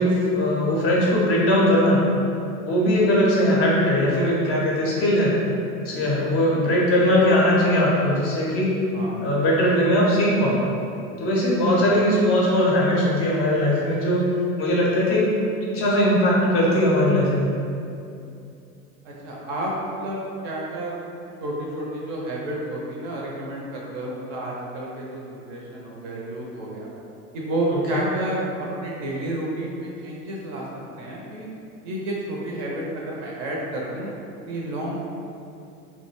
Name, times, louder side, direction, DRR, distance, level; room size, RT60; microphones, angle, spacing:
voice 1, 0.0-2.0 2.6-5.3 5.8-8.8 9.2-10.6 11.2-14.3 14.6-15.3 15.7-17.5 27.7-28.0, left 1 dB, 30° left, -5 dB, 0.5 m, -20 dB
voice 2, 19.0-20.9 21.4-26.9 27.3-30.7 31.0-31.5 31.8-34.1 34.5-35.0, right 1 dB, 40° right, -3 dB, 0.5 m, -30 dB
2.3 x 2.1 x 3.1 m, 2.6 s
figure-of-eight pair, 80°, 46 cm